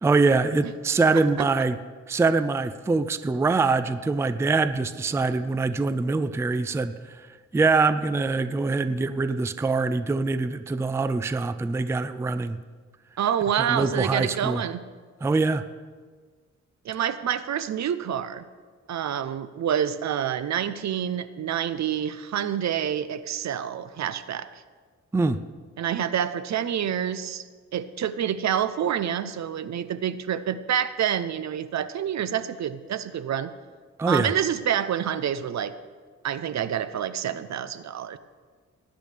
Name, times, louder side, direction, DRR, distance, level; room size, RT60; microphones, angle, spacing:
voice 1, 0.0-1.8 2.1-7.2 7.5-12.6 13.7-14.6 15.2-15.6 25.1-25.4 34.0-34.3, right 3 dB, 10° right, 12 dB, 0.4 m, -24 dB
voice 2, 1.1-1.5 13.2-14.8 16.8-18.4 18.9-24.5 25.8-27.4 27.7-33.5 34.1-35.7 36.2-38.2, right 9 dB, 65° right, 14 dB, 0.6 m, -27 dB
19.0 x 10.0 x 3.3 m, 1.5 s
cardioid pair, 100°, 30 cm